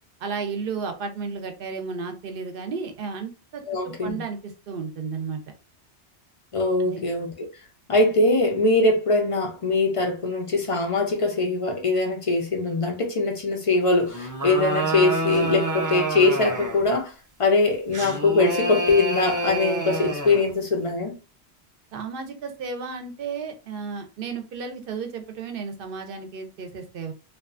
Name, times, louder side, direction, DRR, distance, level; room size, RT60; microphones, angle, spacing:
voice 1, 0.2-5.4 6.8-7.0 21.9-27.1, right 5 dB, 60° right, 0.7 m, -33 dB
voice 2, 3.7-4.2 6.5-7.3 7.9-17.1 17.4-21.1, left 2 dB, 50° left, 0.4 m, -22 dB
sound 1, 14.1-16.9 17.9-20.5, right 1 dB, 30° right, 0.3 m, -28 dB
2.5 x 2.3 x 2.4 m
omnidirectional pair, 1.1 m